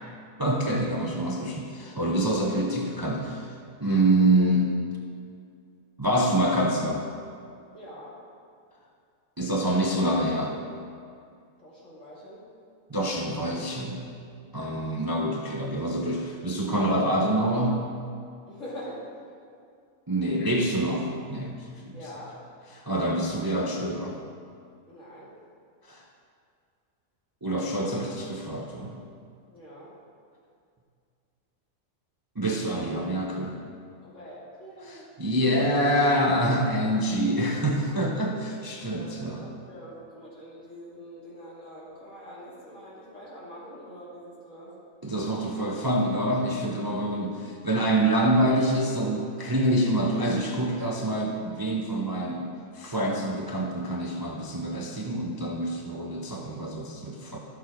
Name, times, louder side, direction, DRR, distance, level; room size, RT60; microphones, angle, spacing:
voice 1, 0.4-4.8 6.0-7.0 9.4-10.5 12.9-14.1 14.5-17.9 20.1-22.0 22.7-24.2 25.9-26.0 27.4-29.0 32.4-33.6 34.8-39.4 45.0-57.4, right 1 dB, 25° right, -1 dB, 0.6 m, -26 dB
voice 2, 7.7-8.2 11.6-12.5 18.5-19.1 21.9-22.4 24.9-25.3 29.5-29.9 34.0-35.1 38.8-44.8, equal, 65° left, -7 dB, 2.8 m, -44 dB
12.5 x 6.5 x 4.7 m, 2.3 s
omnidirectional pair, 1.4 m